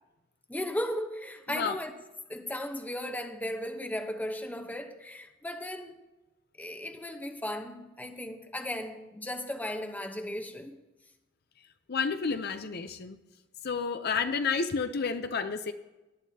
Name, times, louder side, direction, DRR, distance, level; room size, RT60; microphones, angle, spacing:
voice 1, 0.5-1.9 2.3-6.0 6.6-10.8, left 1 dB, 10° left, 0.9 m, -36 dB
voice 2, 11.9-13.2 13.6-15.7, left 5 dB, 55° left, 0.6 m, -30 dB
18.5 x 11.0 x 2.8 m
head